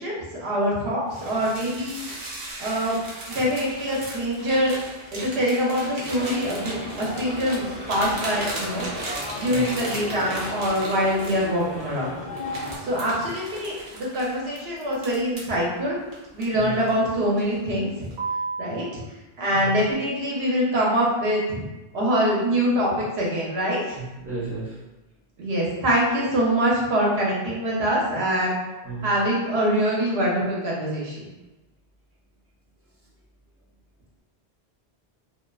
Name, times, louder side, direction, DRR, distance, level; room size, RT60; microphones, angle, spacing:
voice 1, 0.0-2.0 2.6-3.0 3.3-4.8 5.1-8.9 9.4-12.2 12.8-16.0 16.3-18.1 18.6-19.0 19.4-21.7 21.9-24.0 25.4-28.6 29.0-31.3, equal, 80° right, -4 dB, 1.0 m, -24 dB
sound 1, 1.1-11.9 12.4-15.6 16.1-17.0 17.4-17.7 18.1-18.7, right 2 dB, 55° right, 0.7 m, -36 dB
sound 2, 6.1-12.8, left 2 dB, 55° left, 0.6 m, -35 dB
voice 2, 24.0-24.7 28.8-29.1, right 3 dB, 15° right, -7 dB, 0.5 m, -33 dB
2.4 x 2.3 x 2.3 m, 1.0 s
omnidirectional pair, 1.1 m